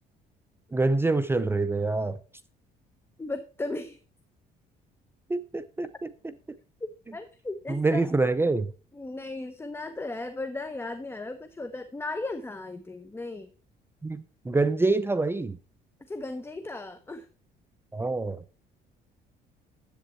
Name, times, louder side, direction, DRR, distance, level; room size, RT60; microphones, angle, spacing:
voice 1, 0.7-2.2 5.3-6.1 7.7-8.7 14.0-15.6 17.9-18.4, right 3 dB, 15° right, 0.6 m, -26 dB
voice 2, 3.2-4.0 6.8-8.1 8.9-13.5 16.1-17.3, left 2 dB, 15° left, 0.9 m, -36 dB
10.5 x 8.2 x 4.5 m
cardioid pair, 110°, 17 cm